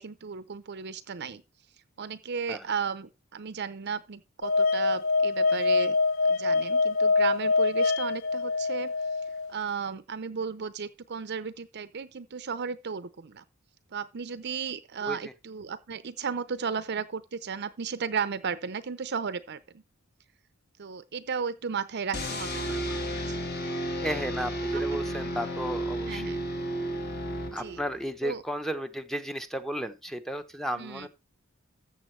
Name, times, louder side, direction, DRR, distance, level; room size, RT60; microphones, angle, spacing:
voice 1, 0.0-1.4 2.0-6.0 6.2-8.9 9.5-13.4 13.9-19.8 20.8-23.4 24.7-25.0 26.1-26.4 27.5-27.8 28.2-28.4 30.7-31.1, right 6 dB, 50° right, 0.6 m, -34 dB
sound 1, 4.4-9.5, left 3 dB, 65° left, 0.6 m, -25 dB
voice 2, 15.0-15.3 24.0-26.3 27.5-31.1, equal, ahead, 0.7 m, -34 dB
sound 2, 22.1-28.0, right 1 dB, 50° left, 1.9 m, -32 dB
13.5 x 7.4 x 3.2 m
head